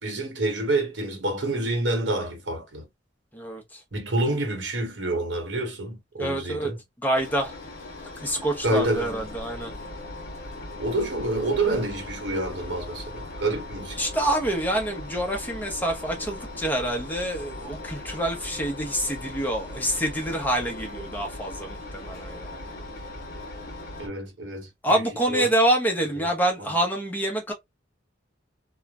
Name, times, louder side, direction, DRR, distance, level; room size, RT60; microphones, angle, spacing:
voice 1, 0.0-2.9 3.9-6.8 8.6-9.2 10.8-14.1 24.0-25.0 25.3-25.5 26.2-26.3, right 2 dB, 70° right, 1.0 m, -28 dB
voice 2, 3.3-3.8 6.2-6.7 7.0-7.5 8.2-9.7 14.0-22.6 24.8-27.5, right 1 dB, 10° left, 0.7 m, -26 dB
Engine, 7.1-24.1, left 2 dB, 55° left, 0.9 m, -39 dB
3.1 x 2.1 x 2.3 m
head